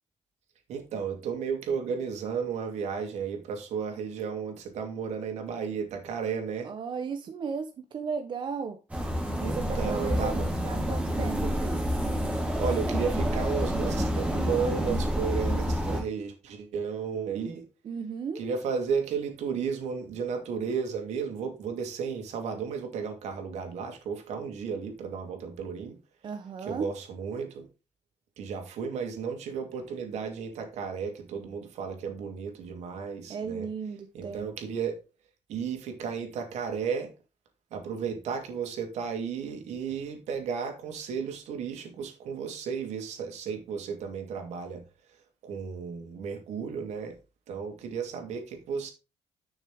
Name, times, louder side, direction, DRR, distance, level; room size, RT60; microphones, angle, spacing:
voice 1, 0.7-6.7 9.4-10.5 12.6-17.6 18.3-25.9 26.6-27.7 28.4-33.7 34.1-35.0 35.5-37.1 37.7-44.8 45.4-47.2 47.5-48.9, right 6 dB, 80° right, 2.7 m, -33 dB
voice 2, 6.6-8.8 9.6-11.8 17.8-18.4 26.2-26.9 33.3-34.5, right 6 dB, 45° right, 0.9 m, -35 dB
sound 1, 8.9-16.0, equal, 10° right, 4.5 m, -28 dB
10.5 x 6.4 x 3.5 m
cardioid pair, 155°, 11 cm